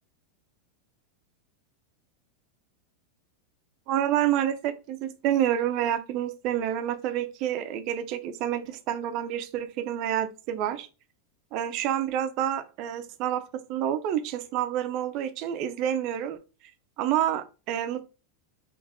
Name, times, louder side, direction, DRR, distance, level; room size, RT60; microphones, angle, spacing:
voice 1, 3.9-10.9 11.5-16.4 17.0-18.1, right 11 dB, 40° right, 0.5 m, -28 dB
3.5 x 3.0 x 3.5 m
supercardioid pair, 165°, 0 cm